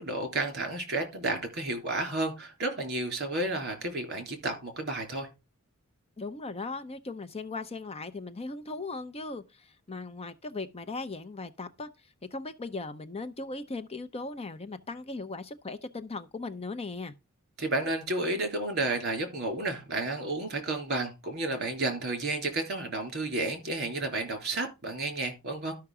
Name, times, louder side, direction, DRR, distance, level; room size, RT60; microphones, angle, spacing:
voice 1, 0.0-5.3 17.6-25.7, right 2 dB, 50° right, 3.5 m, -31 dB
voice 2, 6.2-17.1, left 3 dB, 30° left, 0.6 m, -38 dB
12.5 x 5.8 x 4.8 m
head